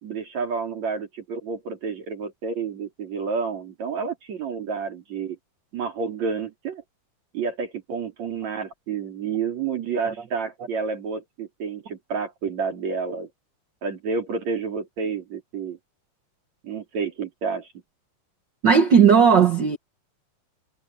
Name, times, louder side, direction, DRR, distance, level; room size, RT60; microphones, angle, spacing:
voice 1, 0.0-5.4 5.7-6.8 7.3-13.3 13.8-15.8 16.6-17.7, right 5 dB, 50° right, 4.7 m, -30 dB
voice 2, 18.6-19.8, right 6 dB, 80° right, 0.9 m, -16 dB
omnidirectional pair, 4.1 m